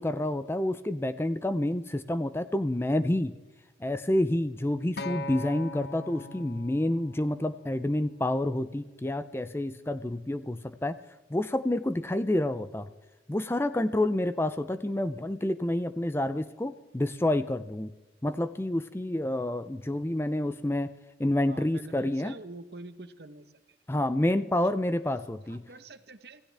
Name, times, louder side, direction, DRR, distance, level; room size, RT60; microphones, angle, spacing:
voice 1, 0.0-3.3 3.8-10.9 11.3-12.9 13.3-17.9 18.2-20.9 21.2-22.4 23.9-25.6, left 1 dB, 15° left, 12 dB, 0.4 m, -28 dB
Acoustic guitar, 5.0-9.2 10.1-10.2, left 2 dB, 60° left, 0.7 m, -42 dB
voice 2, 21.5-23.5 25.4-26.4, right 2 dB, 60° right, 11 dB, 1.0 m, -46 dB
26.0 x 16.0 x 3.4 m, 1.1 s
head